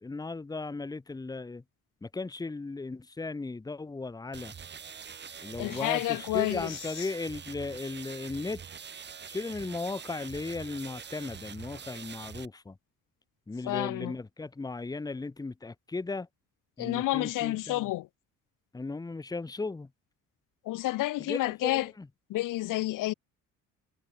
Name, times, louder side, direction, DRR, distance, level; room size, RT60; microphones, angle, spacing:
voice 1, 0.0-1.6 2.0-4.5 5.4-8.6 9.3-12.8 13.5-16.3 16.8-17.9 18.7-19.9 21.2-22.1, left 3 dB, 10° left, 0.9 m, -36 dB
sound 1, 4.3-12.5, right 7 dB, 35° right, 1.3 m, -44 dB
voice 2, 5.6-6.7 13.7-14.1 16.8-18.1 20.7-21.9 22.3-23.1, left 17 dB, 75° left, 0.6 m, -30 dB
cardioid pair, 120°, 32 cm